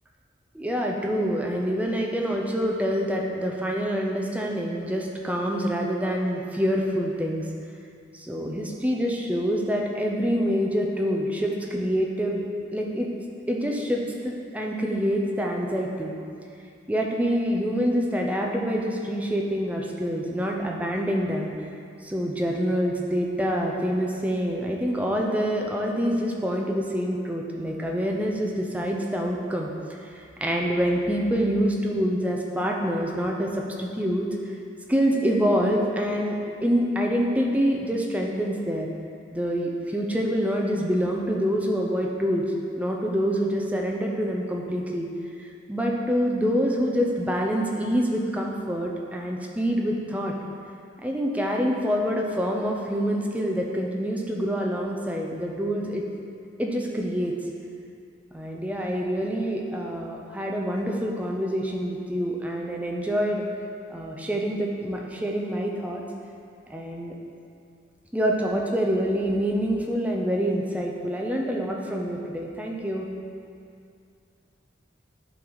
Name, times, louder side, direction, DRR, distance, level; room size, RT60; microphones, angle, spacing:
voice 1, 0.5-7.5 8.1-12.4 12.7-13.1 13.5-16.1 16.9-21.5 22.0-29.7 30.0-34.3 34.9-38.9 39.3-42.4 42.8-45.1 45.4-50.3 51.0-56.0 56.6-57.3 58.3-63.4 63.9-66.0 66.7-67.2 68.1-73.1, equal, 5° right, -1 dB, 0.6 m, -26 dB
10.5 x 4.0 x 4.7 m, 2.4 s
head